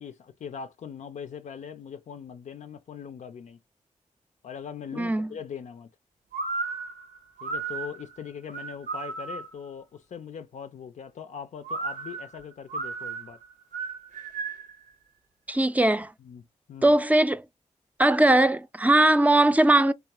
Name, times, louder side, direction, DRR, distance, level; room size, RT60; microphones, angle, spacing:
voice 1, 0.0-3.6 4.4-5.9 7.4-13.4 16.2-17.0 18.9-19.0, left 7 dB, 70° left, 0.5 m, -41 dB
voice 2, 5.0-5.3 15.5-16.1 16.8-17.4 18.0-19.9, right 1 dB, 10° right, 0.5 m, -20 dB
sound 1, 6.3-9.7 11.6-14.8, right 4 dB, 85° right, 0.8 m, -34 dB
3.5 x 3.1 x 2.9 m
supercardioid pair, 40°, 13 cm